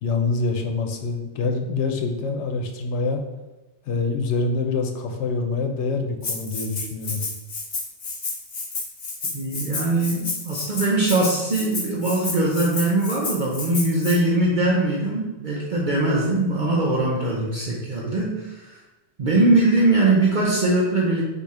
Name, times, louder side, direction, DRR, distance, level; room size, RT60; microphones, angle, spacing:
voice 1, 0.0-3.2 3.9-7.2, left 4 dB, 85° left, 4 dB, 1.0 m, -25 dB
Rattle (instrument), 6.2-14.2, left 3 dB, 45° left, 0.9 m, -31 dB
voice 2, 9.2-18.8 19.2-21.2, right 2 dB, 50° right, -4 dB, 0.8 m, -21 dB
4.1 x 2.7 x 4.7 m, 1.1 s
omnidirectional pair, 1.1 m